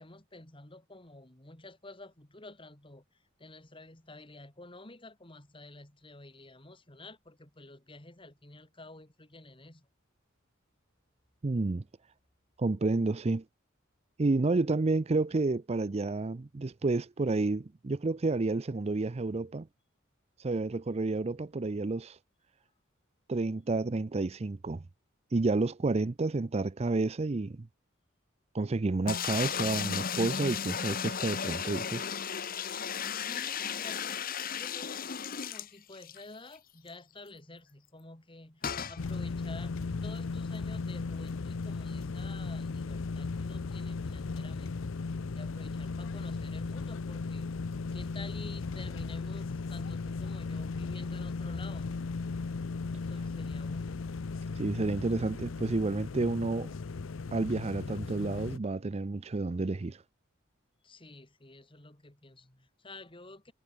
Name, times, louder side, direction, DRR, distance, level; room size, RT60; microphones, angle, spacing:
voice 1, 0.0-9.9 32.7-34.3 34.6-39.7 40.0-44.7 45.0-47.5 47.9-52.1 53.1-54.1 60.8-63.5, left 2 dB, 25° left, 2.7 m, -50 dB
voice 2, 11.4-11.8 12.6-13.4 14.2-19.7 20.4-22.2 23.3-24.8 25.3-27.7 28.5-32.1 54.6-56.7 57.3-60.0, right 3 dB, 30° right, 0.5 m, -30 dB
sound 1, 29.1-36.2 36.6-36.7 36.9-37.0 38.6-39.0, left 7 dB, 45° left, 1.1 m, -34 dB
sound 2, 39.0-58.6, left 4 dB, 80° left, 0.6 m, -36 dB
head